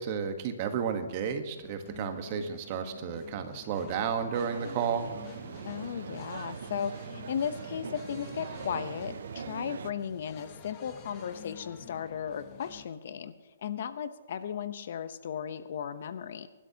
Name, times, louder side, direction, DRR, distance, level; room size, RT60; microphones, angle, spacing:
voice 1, 0.0-5.1, right 7 dB, 35° right, 7 dB, 1.2 m, -32 dB
sound 1, 1.5-12.9, left 8 dB, 25° left, 1.0 m, -50 dB
sound 2, 4.3-9.9, right 7 dB, 65° right, 0.5 m, -42 dB
voice 2, 5.6-13.3 13.6-16.5, left 8 dB, 55° left, 12 dB, 0.7 m, -36 dB
24.5 x 12.0 x 2.8 m, 1.3 s
hypercardioid pair, 160°, 0 cm